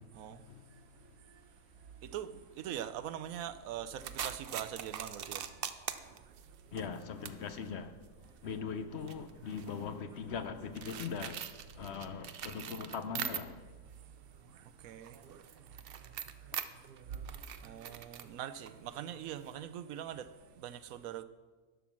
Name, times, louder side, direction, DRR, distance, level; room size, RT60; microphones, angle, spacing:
voice 1, 0.1-0.4 0.7-1.5 1.8-5.7 6.0-6.2 8.3-8.4 14.6-15.2 16.0-16.1 17.6-21.2, right 10 dB, 85° right, 1.1 m, -43 dB
sound 1, 4.0-13.8 14.1-19.5, right 8 dB, 60° right, 0.6 m, -44 dB
voice 2, 6.7-7.9 8.4-11.4 11.8-13.6, left 6 dB, 60° left, 0.8 m, -40 dB
11.5 x 7.2 x 6.1 m
omnidirectional pair, 1.4 m